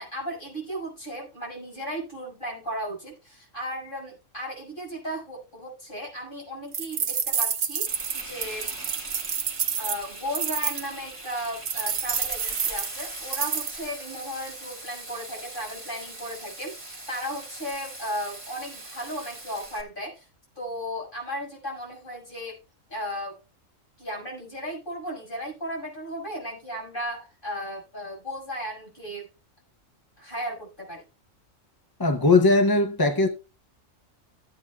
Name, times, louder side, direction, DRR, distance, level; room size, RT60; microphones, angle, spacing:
voice 1, 0.0-8.7 9.8-20.3 20.5-22.6 22.9-23.4 24.0-29.3 30.2-31.0, equal, 40° left, 6.3 m, -35 dB
sound 1, 6.7-10.9 11.7-13.8, right 7 dB, 65° right, 1.2 m, -28 dB
Frying (food), 7.9-19.8, right 2 dB, 25° right, 2.5 m, -40 dB
voice 2, 32.0-33.3, left 3 dB, 20° left, 0.6 m, -19 dB
16.5 x 8.5 x 2.4 m
omnidirectional pair, 1.4 m